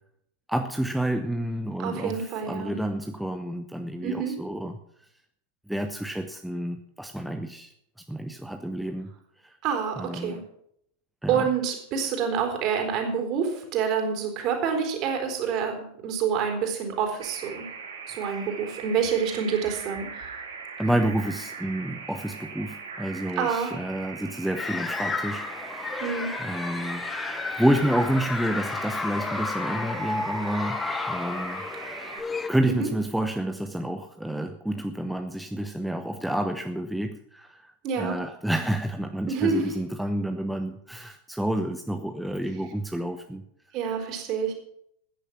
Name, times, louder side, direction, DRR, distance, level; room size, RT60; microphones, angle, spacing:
voice 1, 0.5-4.7 5.7-7.7 8.1-9.1 9.4-9.6 10.0-10.4 11.2-11.5 20.8-26.0 26.4-27.1 27.6-31.6 32.5-43.4, right 1 dB, ahead, 6 dB, 0.9 m, -29 dB
voice 2, 1.8-2.7 4.0-4.4 9.6-10.4 11.3-17.6 18.1-20.3 23.4-23.7 26.0-26.3 32.7-32.9 37.8-38.2 39.3-39.7 43.7-44.5, right 6 dB, 40° right, 3 dB, 4.0 m, -27 dB
sound 1, 17.2-32.2, right 5 dB, 70° right, 2.8 m, -40 dB
sound 2, 24.6-32.5, left 4 dB, 15° left, 1.1 m, -32 dB
15.5 x 10.0 x 6.1 m, 0.71 s
figure-of-eight pair, 90°, 0 cm